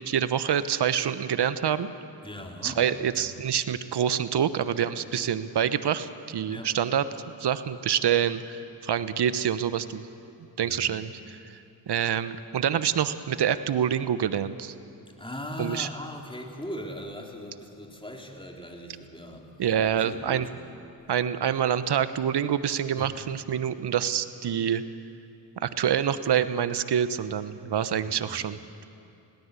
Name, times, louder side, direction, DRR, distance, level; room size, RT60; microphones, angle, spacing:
voice 1, 0.0-1.9 2.6-7.0 7.4-10.1 10.6-11.4 11.9-14.7 15.6-15.9 19.6-20.5 21.1-24.8 25.6-28.8, right 9 dB, 55° right, 13 dB, 1.1 m, -26 dB
voice 2, 2.2-2.8 3.2-3.3 6.5-6.7 10.6-11.1 15.2-19.5 19.9-20.5 22.9-23.1 28.0-28.4, equal, 10° left, 1 dB, 3.7 m, -39 dB
21.0 x 17.0 x 8.4 m, 2.6 s
supercardioid pair, 50°, 49 cm